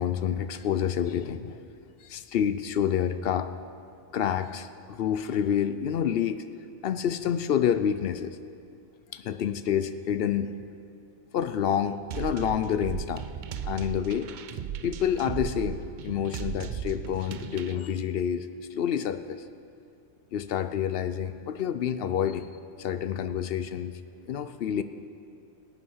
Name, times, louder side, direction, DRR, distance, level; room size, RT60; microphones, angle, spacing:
voice 1, 0.0-1.6 2.0-3.5 4.1-6.4 6.8-8.4 9.1-10.5 11.3-13.2 13.6-14.3 14.8-19.4 20.3-22.5 22.8-24.0 24.3-24.8, left 9 dB, 60° left, 11 dB, 0.7 m, -28 dB
sound 1, 12.1-17.8, right 9 dB, 60° right, 0.5 m, -36 dB
17.5 x 9.8 x 5.5 m, 2.4 s
omnidirectional pair, 1.3 m